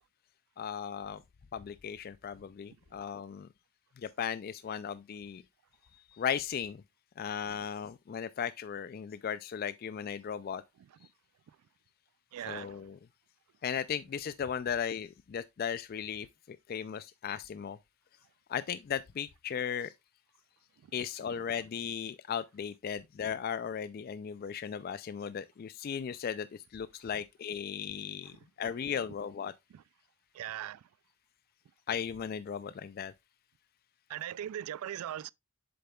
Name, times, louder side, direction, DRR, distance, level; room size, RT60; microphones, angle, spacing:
voice 1, 0.6-1.2 1.5-3.5 4.0-5.4 6.1-6.8 7.2-10.6 12.5-13.0 13.6-17.8 18.5-19.9 20.9-29.5 31.9-33.1, left 7 dB, 45° left, 0.3 m, -36 dB
voice 2, 12.3-12.8 21.3-21.4 28.3-28.7 29.7-29.8 30.3-30.9 34.1-35.3, right 11 dB, 75° right, 0.3 m, -41 dB
7.7 x 6.7 x 2.3 m
head